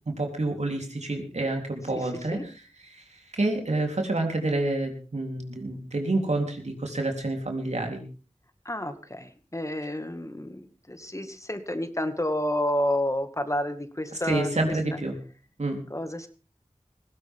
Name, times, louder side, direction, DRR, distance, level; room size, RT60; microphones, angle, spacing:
voice 1, 0.2-8.0 14.2-15.2 15.6-15.8, right 2 dB, 80° right, 3 dB, 3.7 m, -28 dB
voice 2, 8.7-14.5 15.9-16.3, left 1 dB, 25° left, 8 dB, 2.1 m, -30 dB
19.0 x 17.0 x 3.7 m, 0.36 s
wide cardioid pair, 50°, 11 cm